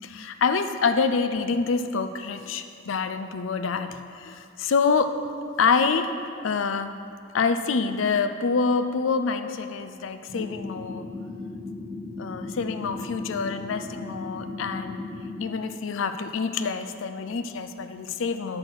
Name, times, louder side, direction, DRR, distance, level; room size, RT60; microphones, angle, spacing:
voice 1, 0.0-5.1 5.6-6.1 6.4-6.9 7.3-11.1 12.2-15.1 15.4-18.6, left 5 dB, 75° left, 9 dB, 0.5 m, -26 dB
sound 1, 10.3-15.4, left 3 dB, 35° left, 1.2 m, -36 dB
6.5 x 6.1 x 6.3 m, 2.4 s
head